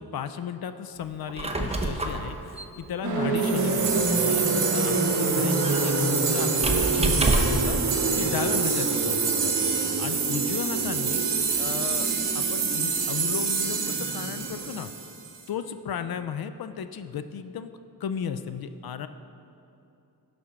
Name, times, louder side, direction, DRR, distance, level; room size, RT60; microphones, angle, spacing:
voice 1, 0.0-9.6 10.0-11.3 11.5-12.1 12.3-14.9 15.5-17.7 18.0-19.1, left 8 dB, 65° left, 11 dB, 0.5 m, -35 dB
Squeak, 1.1-7.8, right 2 dB, 15° right, 0.7 m, -30 dB
sound 1, 3.0-14.7, right 3 dB, 45° right, 1.3 m, -28 dB
sound 2, 3.4-15.4, right 6 dB, 85° right, 1.0 m, -28 dB
11.0 x 4.3 x 5.8 m, 2.7 s
wide cardioid pair, 100°, 40 cm